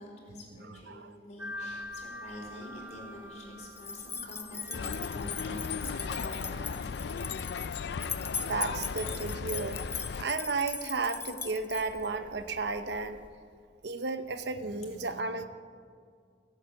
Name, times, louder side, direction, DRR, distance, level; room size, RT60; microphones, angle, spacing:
voice 1, 0.0-6.9, left 1 dB, 45° left, -2 dB, 4.2 m, -46 dB
voice 2, 0.5-1.1 8.4-13.2 13.8-15.4, right 3 dB, 70° right, 9 dB, 0.8 m, -34 dB
sound 1, 1.4-13.3, left 1 dB, 10° right, 1.9 m, -48 dB
sound 2, 3.8-12.1, left 5 dB, 15° left, 0.5 m, -39 dB
sound 3, 4.7-10.3, left 5 dB, 70° left, 0.4 m, -36 dB
17.0 x 8.2 x 8.3 m, 2.1 s
head